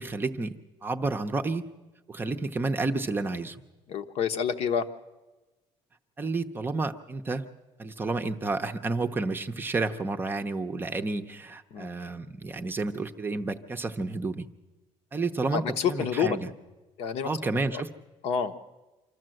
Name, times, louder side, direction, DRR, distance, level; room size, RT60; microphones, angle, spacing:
voice 1, 0.0-1.7 2.1-3.6 6.2-7.4 7.8-14.5 15.1-16.5 17.2-17.9, right 3 dB, 15° right, 5 dB, 0.7 m, -30 dB
voice 2, 3.9-4.8 11.7-11.9 15.5-16.4 17.0-17.3 17.7-17.8 18.2-18.5, left 7 dB, 55° left, 8 dB, 1.0 m, -28 dB
26.0 x 13.0 x 7.7 m, 1.1 s
cardioid pair, 155°, 12 cm